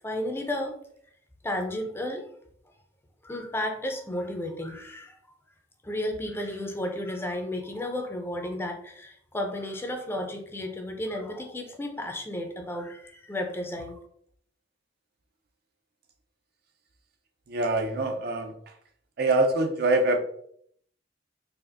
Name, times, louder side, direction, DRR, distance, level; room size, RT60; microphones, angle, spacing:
voice 1, 0.0-0.8 1.4-2.3 3.2-5.2 5.8-14.0, left 1 dB, 15° left, 4 dB, 0.5 m, -33 dB
voice 2, 17.5-18.7 19.2-20.2, right 2 dB, 60° right, 5 dB, 0.5 m, -24 dB
4.2 x 2.5 x 2.6 m, 0.65 s
head